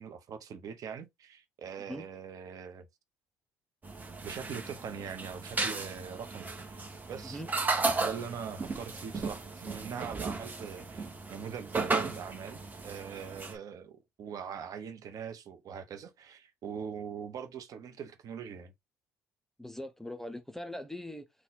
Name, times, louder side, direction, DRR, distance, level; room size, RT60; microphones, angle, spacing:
voice 1, 0.0-2.9 4.2-7.4 8.0-18.7, right 7 dB, 50° right, 0.8 m, -42 dB
sound 1, 3.8-13.6, right 3 dB, 20° right, 1.3 m, -35 dB
voice 2, 19.6-21.3, left 1 dB, 5° left, 0.7 m, -41 dB
3.9 x 2.3 x 3.8 m
hypercardioid pair, 55°, 8 cm